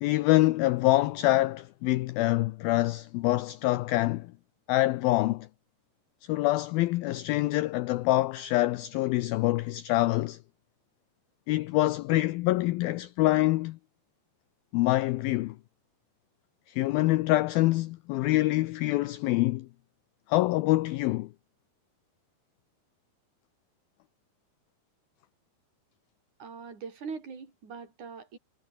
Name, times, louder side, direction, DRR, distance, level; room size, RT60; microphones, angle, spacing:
voice 1, 0.0-4.3 4.7-5.5 6.2-10.4 11.5-13.8 14.7-15.6 16.7-19.7 20.3-21.3, left 18 dB, 85° left, 2.1 m, -25 dB
voice 2, 26.4-28.4, right 5 dB, 45° right, 6.7 m, -41 dB
omnidirectional pair, 5.0 m